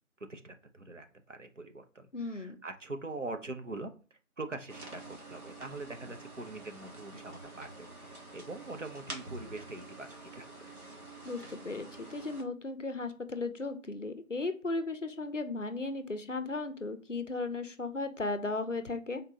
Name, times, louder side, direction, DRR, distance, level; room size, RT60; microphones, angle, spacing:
voice 1, 0.2-10.5, right 2 dB, 60° right, 7 dB, 0.5 m, -43 dB
voice 2, 2.1-2.6 11.2-19.2, left 3 dB, 60° left, 10 dB, 0.5 m, -36 dB
sound 1, 4.7-12.4, right 2 dB, 85° right, 1.3 m, -48 dB
3.8 x 2.6 x 2.7 m, 0.38 s
figure-of-eight pair, 175°, 43 cm